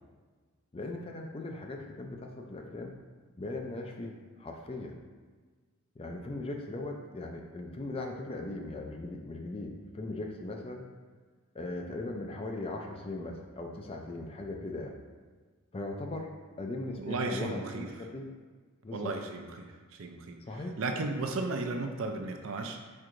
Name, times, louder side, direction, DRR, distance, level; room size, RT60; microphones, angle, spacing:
voice 1, 0.7-2.9 3.4-4.9 6.0-10.9 11.5-14.9 15.7-18.3 18.8-19.1 20.4-20.7, left 2 dB, 25° left, 2 dB, 0.4 m, -39 dB
voice 2, 17.0-17.9 18.9-19.7 20.0-20.4 20.8-22.8, right 3 dB, 65° right, 4 dB, 0.5 m, -34 dB
4.6 x 4.4 x 2.5 m, 1.5 s
head